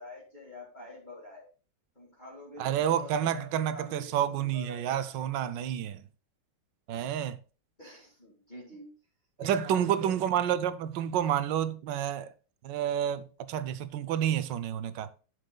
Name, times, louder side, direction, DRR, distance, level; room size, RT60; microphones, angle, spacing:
voice 1, 0.0-1.5 2.0-5.2 7.8-8.9 9.4-10.1, left 1 dB, 25° left, 2.1 m, -47 dB
voice 2, 2.6-6.0 6.9-7.4 9.4-12.3 12.6-15.1, right 10 dB, 75° right, 1.3 m, -29 dB
11.5 x 6.5 x 2.3 m
omnidirectional pair, 2.0 m